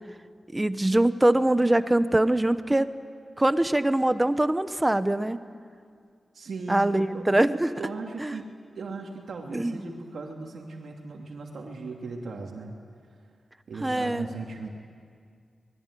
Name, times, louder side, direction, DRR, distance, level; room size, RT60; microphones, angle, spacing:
voice 1, 0.5-2.9 3.4-5.4 6.7-7.7 8.2-8.4 9.5-9.8 13.8-14.3, right 1 dB, 15° right, 12 dB, 0.8 m, -23 dB
voice 2, 6.3-7.3 7.8-8.5 8.8-12.8 13.7-14.7, right 3 dB, 75° right, 0 dB, 2.7 m, -37 dB
25.5 x 21.0 x 10.0 m, 2.2 s
wide cardioid pair, 160°, 0 cm